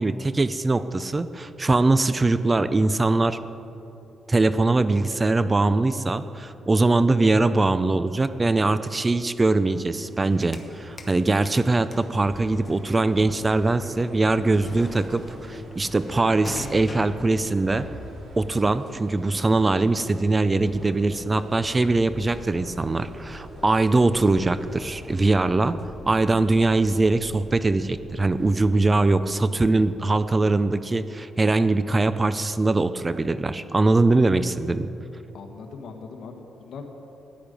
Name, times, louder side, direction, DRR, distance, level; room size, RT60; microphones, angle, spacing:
voice 1, 0.0-3.4 4.3-17.9 18.4-25.8 26.1-34.9, right 2 dB, 20° right, 13 dB, 0.4 m, -22 dB
sound 1, 10.0-25.4, right 1 dB, 70° right, 2.6 m, -47 dB
sound 2, 10.4-11.2 11.4-28.9, left 2 dB, 25° left, 1.1 m, -43 dB
sound 3, 11.0-11.9 12.3-17.9 18.3-21.9, left 2 dB, 85° left, 2.2 m, -46 dB
voice 2, 35.3-36.8, left 5 dB, 65° left, 3 dB, 1.5 m, -40 dB
13.5 x 10.0 x 5.2 m, 2.8 s
cardioid pair, 140°, 0 cm